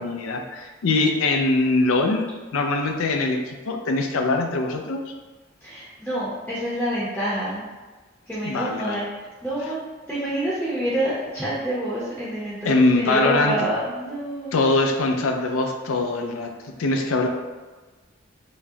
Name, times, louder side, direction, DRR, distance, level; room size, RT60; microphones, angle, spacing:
voice 1, 0.0-2.3 2.5-5.1 8.5-9.0 12.6-13.6 14.5-16.5 16.8-17.3, left 2 dB, 85° left, 4 dB, 0.4 m, -22 dB
voice 2, 5.6-7.6 8.3-9.8 10.1-14.5, right 1 dB, 5° left, -9 dB, 0.7 m, -27 dB
4.7 x 2.2 x 2.7 m, 1.3 s
head